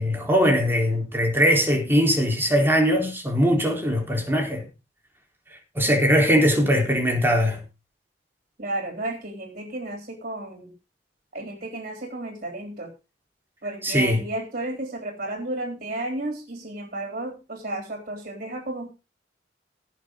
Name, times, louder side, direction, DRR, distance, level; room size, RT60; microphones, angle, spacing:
voice 1, 0.0-4.6 5.7-7.6 13.8-14.2, equal, 15° right, 4.0 m, -21 dB
voice 2, 8.6-10.7 11.3-12.9 13.6-18.9, right 2 dB, 50° right, 3.7 m, -32 dB
17.5 x 6.4 x 5.1 m
head